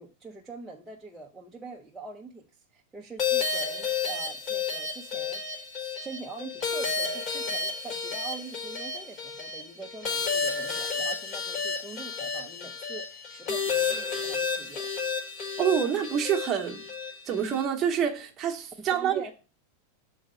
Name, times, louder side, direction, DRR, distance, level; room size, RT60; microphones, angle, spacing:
voice 1, 0.0-2.4 2.7-14.9 18.8-19.3, right 4 dB, 5° right, 0.5 m, -43 dB
sound 1, 3.2-17.7, left 5 dB, 35° left, 1.3 m, -31 dB
voice 2, 15.6-16.8 17.3-19.1, right 8 dB, 20° right, 0.9 m, -27 dB
6.4 x 4.0 x 5.0 m
supercardioid pair, 170°, 0 cm